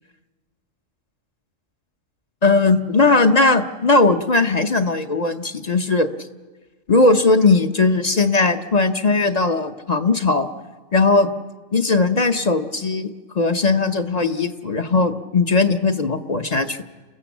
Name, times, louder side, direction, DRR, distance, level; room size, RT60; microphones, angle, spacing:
voice 1, 2.4-6.1 6.9-10.5 10.9-11.3 11.7-13.1 13.3-16.8, left 3 dB, 35° left, 7 dB, 0.8 m, -18 dB
29.0 x 16.0 x 7.3 m, 1.3 s
omnidirectional pair, 1.4 m